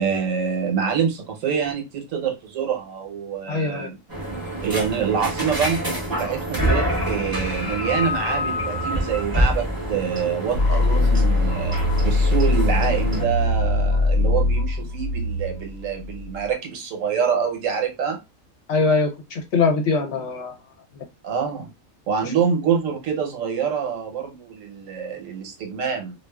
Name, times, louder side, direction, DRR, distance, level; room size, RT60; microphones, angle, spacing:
voice 1, 0.0-4.0 4.6-11.8 12.0-18.2 21.2-21.7 22.1-26.1, right 7 dB, 75° right, 1.1 m, -26 dB
voice 2, 3.5-3.9 18.7-20.5 22.2-22.3, left 4 dB, 65° left, 0.9 m, -22 dB
sound 1, 4.1-13.2, equal, 25° right, 0.5 m, -26 dB
sound 2, 10.5-16.5, left 2 dB, 90° left, 1.0 m, -21 dB
2.4 x 2.4 x 2.2 m
omnidirectional pair, 1.4 m